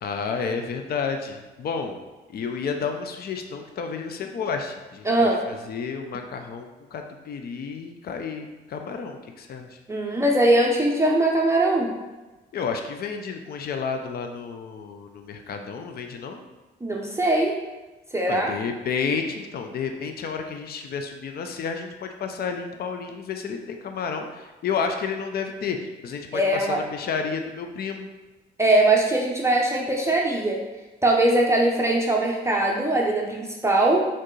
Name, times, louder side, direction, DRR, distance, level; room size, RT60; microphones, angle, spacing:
voice 1, 0.0-2.0 2.3-9.8 12.5-16.4 18.3-28.1, left 5 dB, 50° left, 5 dB, 0.5 m, -31 dB
voice 2, 5.0-5.4 9.9-11.9 16.8-17.6 18.1-18.5 26.3-26.8 28.6-30.6 31.0-34.1, right 1 dB, 15° right, -2 dB, 0.6 m, -21 dB
4.4 x 3.6 x 3.1 m, 1.1 s
cardioid pair, 90°, 20 cm